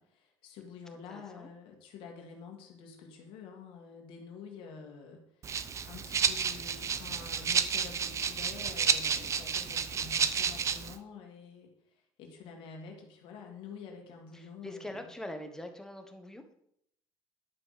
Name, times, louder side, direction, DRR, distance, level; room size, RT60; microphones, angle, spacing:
voice 1, 0.0-5.6 5.9-11.7 12.2-15.0, left 5 dB, 70° left, 1 dB, 2.0 m, -48 dB
voice 2, 0.9-1.5 14.3-16.5, left 1 dB, 5° left, 6 dB, 1.3 m, -44 dB
Rattle (instrument), 5.4-11.0, right 7 dB, 35° right, 0.6 m, -31 dB
11.0 x 5.5 x 6.6 m, 0.72 s
cardioid pair, 130°, 9 cm